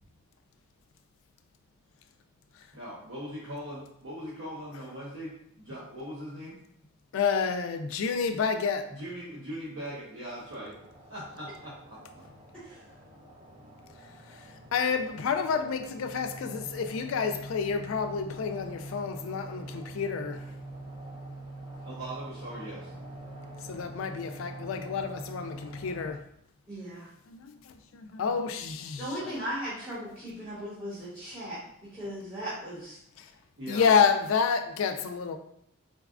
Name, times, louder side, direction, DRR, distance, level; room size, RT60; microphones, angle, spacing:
voice 1, 2.7-6.6 8.9-10.7 11.1-12.2 21.8-22.9 33.6-33.9, equal, 60° right, -8 dB, 0.7 m, -40 dB
voice 2, 7.1-8.9 14.3-20.4 23.6-26.2 27.3-29.4 33.2-33.3 33.7-35.4, left 6 dB, 70° left, 7 dB, 0.3 m, -29 dB
sound 1, 10.4-26.1, right 1 dB, 20° right, 0.5 m, -44 dB
voice 3, 12.5-12.9 26.7-27.1 29.0-33.0, equal, 5° right, -13 dB, 1.0 m, -38 dB
3.9 x 2.3 x 2.4 m, 0.72 s
head